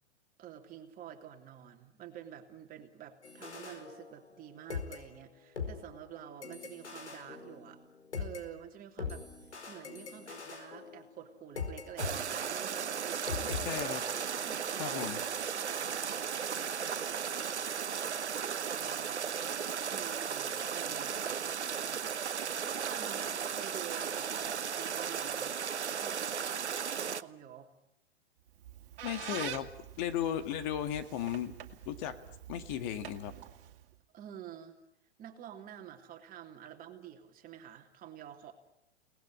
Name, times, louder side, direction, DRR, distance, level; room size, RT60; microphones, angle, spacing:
voice 1, 0.4-7.8 8.1-9.3 9.7-13.6 14.3-15.0 15.5-16.8 18.4-19.2 19.8-21.5 21.8-25.5 26.0-27.7 34.1-34.8 35.2-38.5, right 10 dB, 25° right, 4 dB, 3.2 m, -49 dB
sound 1, 3.2-4.4 4.7-8.4 9.0-12.1 12.4-12.7 13.3-14.7 15.0-15.2, left 5 dB, 80° left, 5.0 m, -42 dB
sound 2, 12.0-27.2, right 7 dB, 85° right, 1.0 m, -35 dB
voice 2, 13.6-14.0 14.8-15.2 29.0-29.7 30.0-31.5 31.9-32.2 32.5-33.3, left 10 dB, 40° left, 8 dB, 1.9 m, -35 dB
Squeak, 28.5-33.9, right 11 dB, 55° right, 2.6 m, -46 dB
30.0 x 19.5 x 9.9 m, 0.85 s
hypercardioid pair, 115°, 33 cm